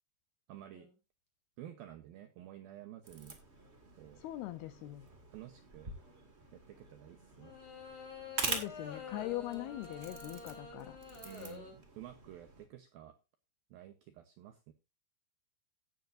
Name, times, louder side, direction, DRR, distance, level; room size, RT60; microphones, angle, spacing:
voice 1, 0.5-0.9 1.6-3.4 4.0-4.2 5.3-5.9 6.5-7.6 11.2-13.2 13.7-14.7, right 12 dB, 85° right, 8 dB, 2.1 m, -51 dB
sound 1, 0.7-0.9 7.4-11.7, left 4 dB, 25° left, 3.3 m, -48 dB
sound 2, 3.0-12.7, right 3 dB, 50° right, 0.7 m, -45 dB
voice 2, 4.2-5.1 8.4-11.0, left 15 dB, 85° left, 12 dB, 2.2 m, -41 dB
16.5 x 9.2 x 2.6 m, 0.26 s
omnidirectional pair, 5.4 m